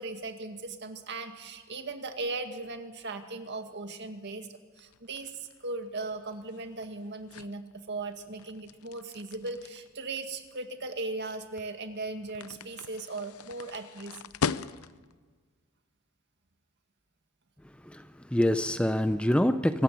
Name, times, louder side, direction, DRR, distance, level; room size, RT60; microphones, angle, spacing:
voice 1, 0.0-4.5 4.8-14.2, right 3 dB, 55° right, 6 dB, 2.0 m, -38 dB
sound 1, 4.8-15.2, left 6 dB, 85° left, 0.6 m, -40 dB
voice 2, 17.8-19.8, left 1 dB, 5° left, 10 dB, 0.6 m, -26 dB
25.0 x 15.0 x 9.3 m, 1.5 s
head